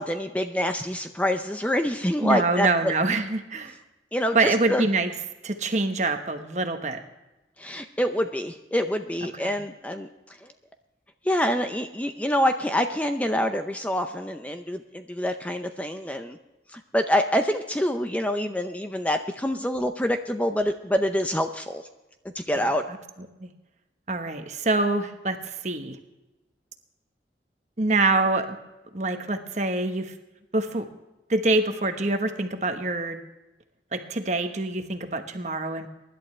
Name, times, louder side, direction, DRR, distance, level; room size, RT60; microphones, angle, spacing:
voice 1, 0.0-2.7 4.1-4.8 7.6-10.1 10.4-10.5 11.2-16.4 16.7-21.8 22.3-22.8, equal, 10° left, 6 dB, 0.6 m, -26 dB
voice 2, 2.2-3.7 4.3-5.1 5.4-7.0 9.4-9.6 22.6-23.0 23.4-23.5 24.1-26.0 27.8-28.6 28.9-30.1 30.5-30.9 31.3-33.2 33.9-35.9, right 2 dB, 40° right, 7 dB, 1.2 m, -25 dB
23.5 x 11.5 x 3.3 m, 1.0 s
head